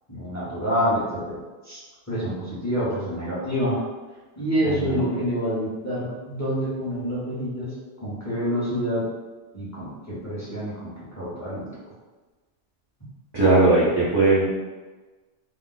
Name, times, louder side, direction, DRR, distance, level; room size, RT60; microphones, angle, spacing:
voice 1, 0.1-1.4 1.6-1.8 2.1-3.8 4.4-9.0 9.5-11.7, equal, 15° left, -9 dB, 0.8 m, -27 dB
voice 2, 4.6-5.1 13.3-14.5, right 2 dB, 35° right, -9 dB, 0.4 m, -19 dB
2.4 x 2.0 x 3.8 m, 1.3 s
omnidirectional pair, 1.2 m